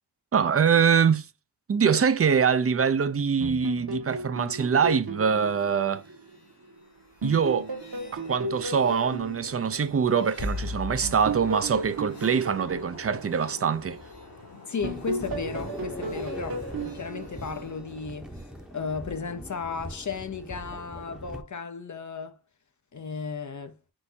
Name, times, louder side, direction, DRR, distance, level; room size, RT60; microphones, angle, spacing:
voice 1, 0.3-1.3 1.7-6.0 7.2-7.7 8.1-14.0, right 6 dB, 35° right, 0.5 m, -24 dB
sound 1, 3.4-6.7 7.2-10.5 11.0-14.3 14.8-18.1, right 2 dB, 60° right, 1.4 m, -35 dB
sound 2, 5.7-18.6, left 2 dB, 90° left, 2.9 m, -43 dB
voice 2, 14.7-18.3 18.7-22.4 22.9-23.8, left 5 dB, 45° left, 0.6 m, -34 dB
sound 3, 14.8-21.4, equal, ahead, 0.8 m, -41 dB
6.1 x 2.6 x 2.7 m
wide cardioid pair, 95°, 40 cm